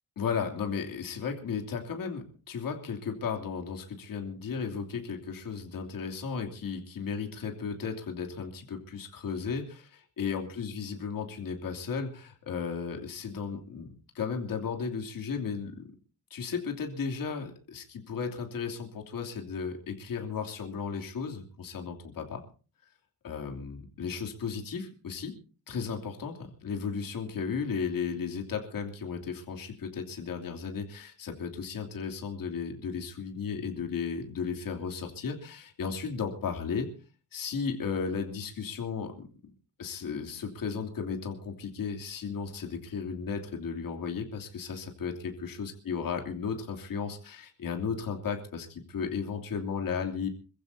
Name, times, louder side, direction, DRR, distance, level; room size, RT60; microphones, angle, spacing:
voice 1, 0.2-13.9 14.1-15.8 16.3-22.4 23.2-25.3 25.7-36.9 37.3-39.3 39.8-50.3, left 6 dB, 70° left, 4 dB, 2.9 m, -35 dB
27.0 x 15.0 x 2.8 m, 0.37 s
wide cardioid pair, 140°, 35 cm